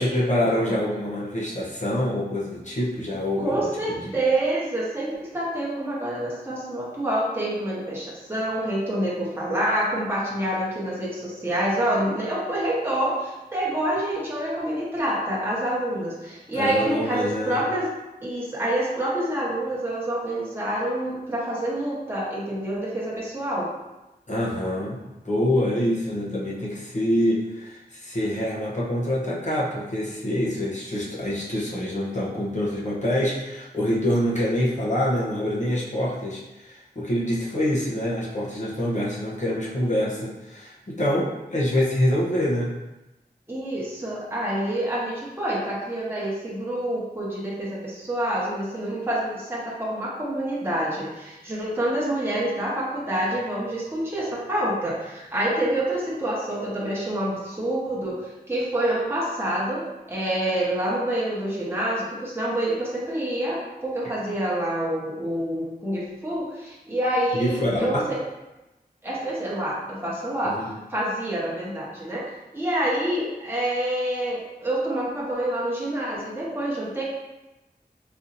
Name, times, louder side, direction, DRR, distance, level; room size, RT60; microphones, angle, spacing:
voice 1, 0.0-3.7 4.0-4.2 16.5-17.7 24.3-42.7 67.3-67.8 70.4-70.7, left 1 dB, 45° left, -6 dB, 0.8 m, -26 dB
voice 2, 3.4-17.9 18.2-23.7 43.5-68.2 69.0-72.2 72.5-77.0, right 1 dB, 15° right, -7 dB, 1.0 m, -27 dB
4.2 x 2.7 x 2.6 m, 1.0 s
wide cardioid pair, 60°, 17 cm